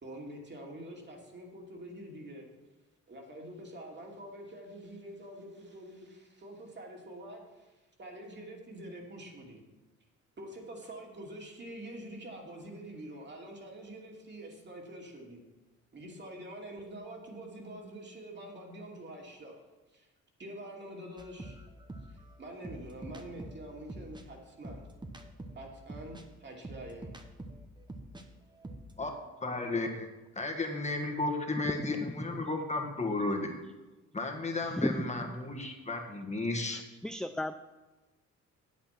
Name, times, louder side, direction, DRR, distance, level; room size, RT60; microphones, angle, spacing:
voice 1, 0.0-2.5 3.1-7.7 8.0-9.6 10.4-15.4 15.9-19.6 19.9-20.1 20.4-21.6 22.1-24.8 25.6-27.2, right 1 dB, 35° right, 0 dB, 2.6 m, -46 dB
sound 1, 21.2-28.2 28.5-29.0, right 1 dB, 15° right, 1.1 m, -46 dB
voice 2, 29.4-30.1 30.3-33.5 34.1-36.8, left 2 dB, 25° left, 2 dB, 1.7 m, -33 dB
voice 3, 31.8-32.5 34.6-35.4 37.0-37.5, left 1 dB, ahead, 9 dB, 0.3 m, -35 dB
8.6 x 8.5 x 5.9 m, 1.1 s
cardioid pair, 90°, 30 cm